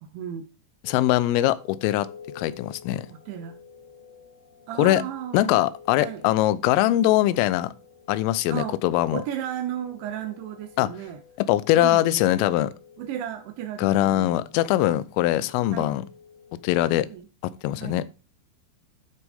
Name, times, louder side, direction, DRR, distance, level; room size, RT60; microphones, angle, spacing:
voice 1, 0.0-0.5 3.1-3.6 4.7-5.6 6.0-6.2 8.5-8.8 9.1-11.2 11.7-12.2 13.0-14.4 15.7-16.0 16.9-17.3 17.8-18.1, right 10 dB, 80° right, 2.7 m, -34 dB
voice 2, 0.8-2.1 2.4-3.1 4.8-5.0 5.3-7.7 8.1-9.2 10.8-10.9 11.4-12.7 13.8-16.0 16.6-17.1 17.4-18.0, left 14 dB, 85° left, 3.2 m, -22 dB
sound 1, 0.8-17.2, left 6 dB, 60° left, 4.6 m, -50 dB
11.0 x 6.1 x 3.5 m
omnidirectional pair, 5.8 m